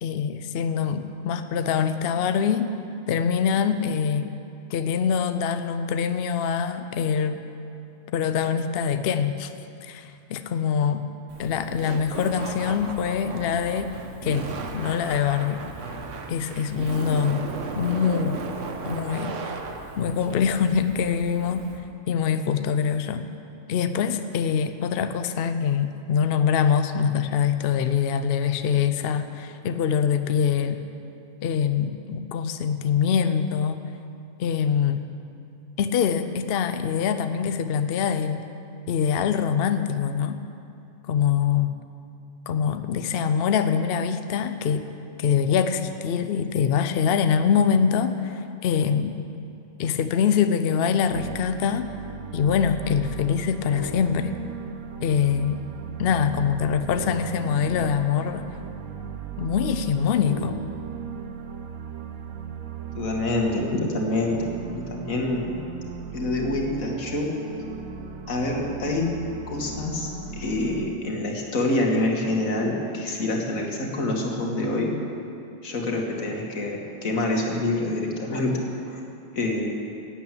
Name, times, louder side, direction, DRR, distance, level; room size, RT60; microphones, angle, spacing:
voice 1, 0.0-2.7 3.1-4.3 4.7-7.4 8.1-9.5 9.8-11.0 11.4-13.9 14.2-15.6 16.3-17.5 17.8-18.4 18.8-19.4 20.0-21.6 22.1-23.2 23.7-30.8 31.4-33.8 34.4-35.1 35.8-38.4 38.9-40.4 41.1-41.7 42.5-44.9 45.2-49.2 49.8-51.9 52.3-54.3 55.0-55.6 56.0-58.5 59.4-60.6, left 7 dB, 60° left, 9 dB, 0.7 m, -24 dB
Laughter, 11.3-21.8, right 4 dB, 65° right, 1.3 m, -35 dB
sound 1, 51.1-70.9, right 7 dB, 90° right, 1.2 m, -37 dB
voice 2, 62.9-65.6 66.1-67.3 68.3-69.1 69.5-70.1 70.4-74.9 75.6-78.6 78.9-79.0 79.3-79.7, left 2 dB, 80° left, 0 dB, 2.2 m, -26 dB
12.0 x 8.3 x 9.0 m, 2.6 s
omnidirectional pair, 1.4 m